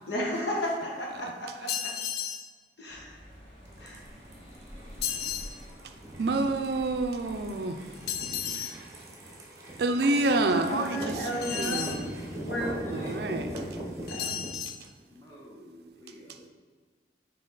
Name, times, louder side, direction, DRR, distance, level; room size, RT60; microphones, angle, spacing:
voice 1, 0.1-1.5 1.8-1.9 2.8-3.1 3.8-4.0 10.3-11.8 12.4-12.7 14.1-14.3, equal, 75° left, -2 dB, 1.3 m, -32 dB
sound 1, 1.7-2.5 5.0-5.5 8.1-8.8 11.4-12.0 14.1-14.8, left 9 dB, 60° left, 0.4 m, -33 dB
sound 2, 2.9-7.9, equal, 35° left, 1.5 m, -48 dB
sound 3, 3.6-14.5, right 1 dB, 15° right, 0.9 m, -40 dB
voice 2, 6.2-7.8 8.4-8.9 9.8-12.1 12.9-13.5, right 2 dB, 60° right, 7 dB, 0.4 m, -28 dB
voice 3, 9.9-11.5 12.6-13.5 15.1-16.5, equal, 20° left, -5 dB, 1.3 m, -47 dB
6.4 x 4.0 x 3.9 m, 1.5 s
head